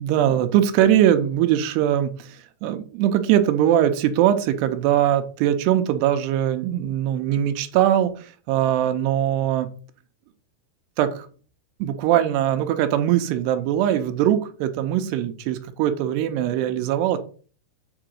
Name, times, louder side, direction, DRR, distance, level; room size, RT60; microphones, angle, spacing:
voice 1, 0.0-9.7 11.0-11.3 11.8-17.2, right 11 dB, 85° right, 9 dB, 2.9 m, -21 dB
7.3 x 3.8 x 6.2 m, 0.41 s
omnidirectional pair, 4.7 m